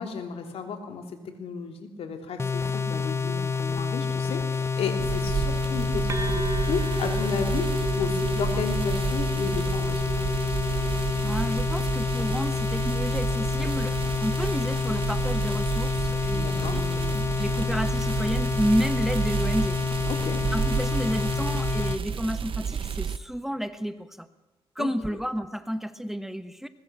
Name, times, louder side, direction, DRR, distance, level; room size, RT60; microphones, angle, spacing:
voice 1, 0.0-7.7 7.9-10.2 16.3-16.8 20.2-20.4 24.8-24.9, left 6 dB, 85° left, 5 dB, 3.2 m, -33 dB
sound 1, 2.4-22.0, left 5 dB, 25° left, 0.7 m, -28 dB
sound 2, 5.0-23.2, right 7 dB, 60° right, 1.0 m, -31 dB
sound 3, 6.1-13.6, right 2 dB, 30° right, 1.9 m, -36 dB
voice 2, 11.2-19.8 20.5-24.3 24.7-26.7, equal, 5° right, 11 dB, 1.3 m, -31 dB
22.0 x 21.0 x 7.5 m, 1.1 s
cardioid pair, 95°, 10 cm